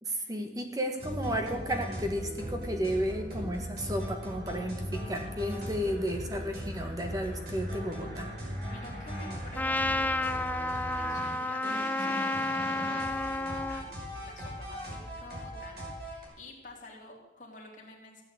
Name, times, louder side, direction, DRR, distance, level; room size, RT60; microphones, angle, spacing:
voice 1, 0.0-8.3, equal, 20° right, 4 dB, 1.7 m, -33 dB
sound 1, 1.0-16.3, equal, 60° right, 5.6 m, -38 dB
voice 2, 8.6-14.0 14.2-18.2, left 2 dB, 45° left, -1 dB, 3.3 m, -50 dB
Trumpet, 9.6-13.8, left 2 dB, 10° left, 0.4 m, -31 dB
15.5 x 9.1 x 8.3 m, 1.1 s
head